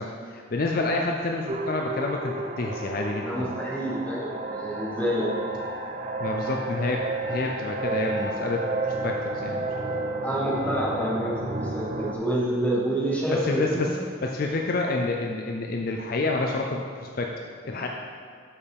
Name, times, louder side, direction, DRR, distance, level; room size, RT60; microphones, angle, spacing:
voice 1, 0.0-3.6 6.2-9.7 13.3-17.3 17.6-17.9, left 2 dB, 45° left, 1 dB, 0.4 m, -28 dB
sound 1, 1.5-12.2, right 2 dB, 35° right, 0.5 m, -31 dB
voice 2, 3.2-5.3 10.2-14.0, right 1 dB, 10° left, -5 dB, 1.2 m, -28 dB
8.3 x 5.5 x 3.4 m, 2.1 s
head